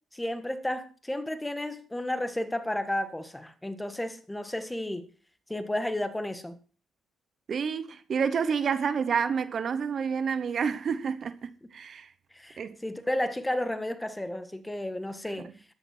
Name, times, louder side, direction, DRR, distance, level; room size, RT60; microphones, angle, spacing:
voice 1, 0.1-5.1 5.5-6.6 12.3-15.5, left 1 dB, 10° left, 1.5 m, -32 dB
voice 2, 7.5-12.1 12.6-12.8, right 6 dB, 50° right, 0.9 m, -29 dB
13.0 x 10.5 x 4.5 m
cardioid pair, 90°, 0 cm